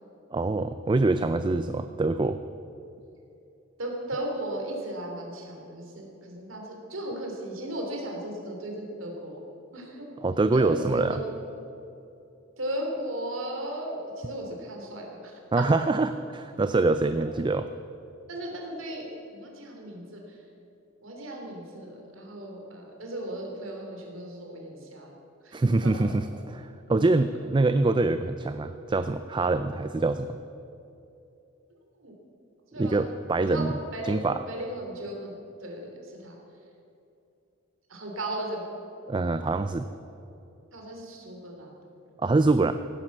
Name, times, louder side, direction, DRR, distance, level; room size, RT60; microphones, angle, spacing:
voice 1, 0.3-2.4 10.2-11.2 15.5-17.7 25.5-30.4 32.8-33.7 34.0-34.4 39.1-39.9 42.2-42.7, right 3 dB, 25° right, 10 dB, 0.4 m, -25 dB
voice 2, 3.8-9.4 9.7-10.1 10.5-11.3 12.6-15.8 18.3-20.4 21.0-25.1 25.4-26.1 32.0-32.1 32.7-33.0 33.4-35.4 35.6-36.4 37.9-38.7 40.7-42.1, right 1 dB, 75° right, 1 dB, 3.3 m, -36 dB
17.0 x 9.9 x 7.3 m, 2.8 s
head